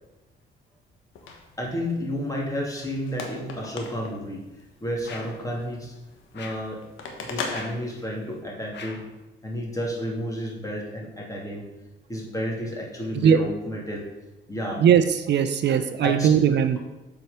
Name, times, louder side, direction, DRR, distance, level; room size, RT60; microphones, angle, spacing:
sound 1, 1.2-8.4, left 4 dB, 85° left, 1.2 m, -40 dB
voice 1, 1.2-4.4 4.8-5.9 6.3-6.8 7.2-9.0 9.4-11.7 12.1-14.0 14.5-14.8 15.7-16.3, equal, 15° left, -2 dB, 2.5 m, -31 dB
sound 2, 5.0-5.5 6.3-6.7 7.5-7.9 8.7-9.1, left 4 dB, 60° left, 1.2 m, -42 dB
voice 2, 14.8-16.8, right 8 dB, 60° right, 10 dB, 0.6 m, -19 dB
7.7 x 4.7 x 5.6 m, 1.0 s
cardioid pair, 90°, 20 cm